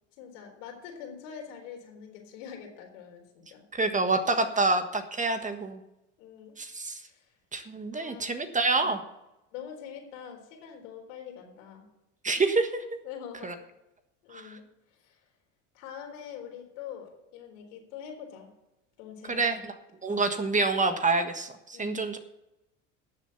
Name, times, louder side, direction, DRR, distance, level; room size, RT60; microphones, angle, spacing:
voice 1, 0.2-3.6 4.6-4.8 6.2-6.6 7.1-7.3 7.9-8.4 8.8-9.0 9.5-11.8 13.0-13.5 14.2-14.6 15.0-15.2 15.7-18.5 19.0-19.6 20.0-20.3 21.7-22.1, left 8 dB, 75° left, 2 dB, 4.1 m, -44 dB
voice 2, 3.7-5.8 6.6-7.0 7.5-9.0 12.2-12.7 13.4-13.5 14.3-14.6 19.3-19.7 20.0-22.2, right 3 dB, 20° right, 7 dB, 1.5 m, -27 dB
12.5 x 7.5 x 7.1 m, 0.91 s
hypercardioid pair, 85°, 37 cm